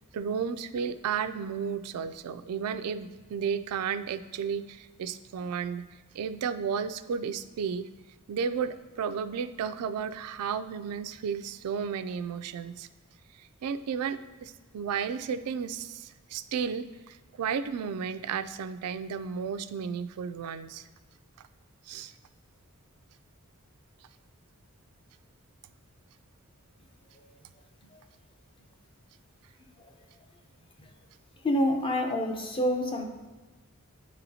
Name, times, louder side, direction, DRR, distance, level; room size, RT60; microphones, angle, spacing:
voice 1, 0.1-5.9 6.1-7.9 8.3-12.9 13.4-20.9 21.9-22.1, right 6 dB, 85° right, 12 dB, 0.3 m, -33 dB
voice 2, 31.4-33.0, left 1 dB, 25° left, 4 dB, 0.6 m, -27 dB
9.6 x 4.2 x 2.7 m, 1.3 s
head